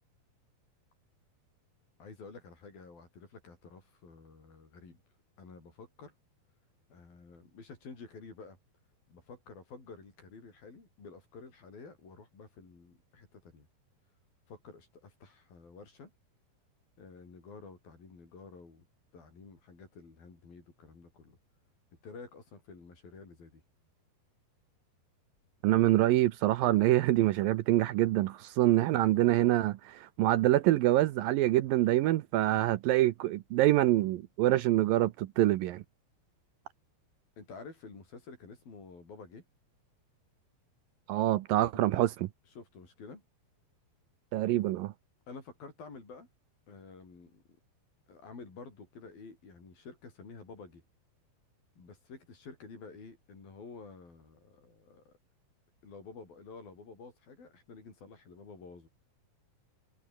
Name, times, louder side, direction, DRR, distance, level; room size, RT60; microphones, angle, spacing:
voice 1, 2.0-5.0 5.4-6.2 6.9-8.6 9.1-13.7 14.5-16.1 17.0-18.9 19.1-21.4 22.0-23.6 37.4-39.5 42.5-43.2 45.3-46.3 46.7-47.4 48.1-50.8 51.8-55.2 55.8-58.9, left 4 dB, 65° left, 8.6 m, -50 dB
voice 2, 25.6-35.8 41.1-42.3 44.3-44.9, right 15 dB, 75° right, 2.3 m, -26 dB
omnidirectional pair, 4.5 m